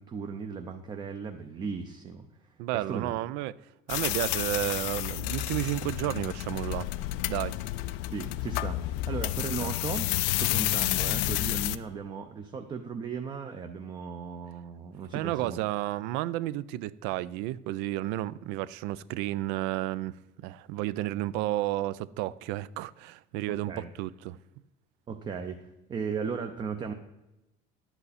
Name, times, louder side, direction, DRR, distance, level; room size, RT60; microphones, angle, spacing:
voice 1, 0.0-3.1 8.1-10.1 10.4-15.6 23.5-23.9 25.1-26.9, right 5 dB, 25° right, 0.5 m, -37 dB
voice 2, 2.6-3.5 3.9-6.9 7.3-7.6 9.6-9.7 15.1-20.2 20.4-24.4, right 15 dB, 85° right, 0.4 m, -32 dB
sound 1, 3.9-11.8, left 16 dB, 90° left, 0.4 m, -30 dB
10.5 x 8.0 x 4.1 m
cardioid pair, 165°, 17 cm